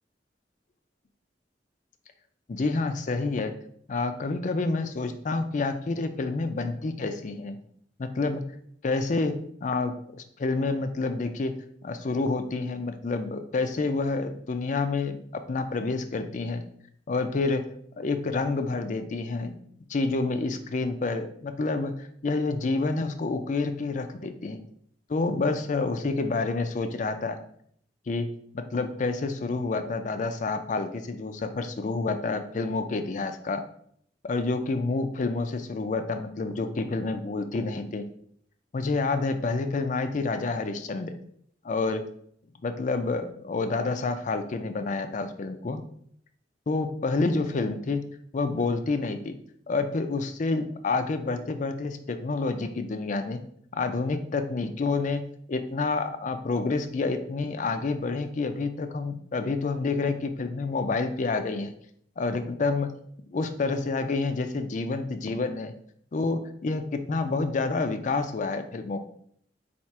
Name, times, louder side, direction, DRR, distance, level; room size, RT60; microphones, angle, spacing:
voice 1, 2.5-3.5 3.9-7.6 8.0-8.4 8.8-9.3 9.6-11.5 11.8-15.2 15.5-16.6 17.1-17.6 18.0-19.5 19.9-24.6 25.1-27.4 28.1-28.3 28.5-33.6 34.2-38.0 38.7-41.1 41.6-42.0 42.6-45.8 46.7-48.0 48.3-49.4 49.7-53.4 53.7-55.2 55.5-61.7 62.2-62.9 63.3-65.7 66.1-69.0, left 3 dB, 45° left, 8 dB, 0.4 m, -28 dB
4.2 x 2.4 x 4.6 m, 0.65 s
head